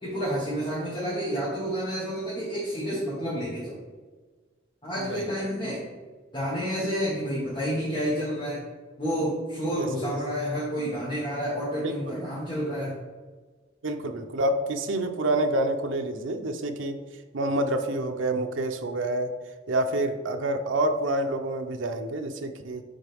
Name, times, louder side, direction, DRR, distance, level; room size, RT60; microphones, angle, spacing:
voice 1, 0.0-3.7 4.8-5.8 6.3-8.6 9.0-12.9, equal, 25° left, -9 dB, 1.5 m, -29 dB
voice 2, 11.8-12.2 13.8-17.0 17.3-19.3 19.7-22.8, right 1 dB, 75° right, 5 dB, 0.6 m, -28 dB
10.5 x 3.8 x 3.5 m, 1.4 s
head